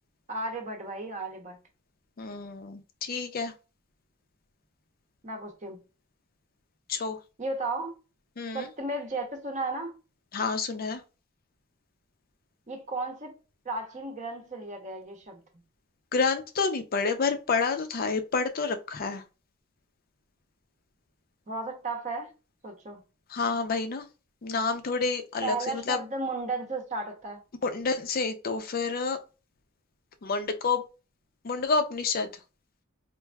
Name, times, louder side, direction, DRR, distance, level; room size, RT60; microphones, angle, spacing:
voice 1, 0.3-1.6 5.2-5.8 7.4-7.9 8.5-9.9 12.7-13.4 13.6-15.4 21.5-22.3 22.6-23.0 25.4-27.4, right 2 dB, 35° right, 0.8 m, -34 dB
voice 2, 2.2-3.5 6.9-7.2 8.4-8.7 10.3-11.0 16.1-19.2 23.3-24.1 24.4-26.0 27.6-29.2 30.2-30.8 31.4-32.3, left 4 dB, 45° left, 0.5 m, -29 dB
4.5 x 2.5 x 2.3 m
head